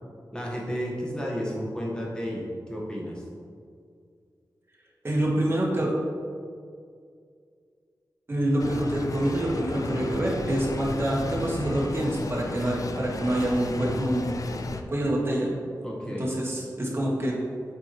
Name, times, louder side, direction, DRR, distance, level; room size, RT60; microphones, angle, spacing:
voice 1, 0.3-3.2 15.8-16.3, equal, 10° left, -4 dB, 1.4 m, -32 dB
voice 2, 5.0-5.9 8.3-14.3 14.9-15.5 16.2-17.3, right 1 dB, 35° right, -4 dB, 1.4 m, -26 dB
sound 1, 8.6-14.8, left 3 dB, 50° left, 0.4 m, -34 dB
7.5 x 4.4 x 3.1 m, 2.2 s
wide cardioid pair, 85°, 7 cm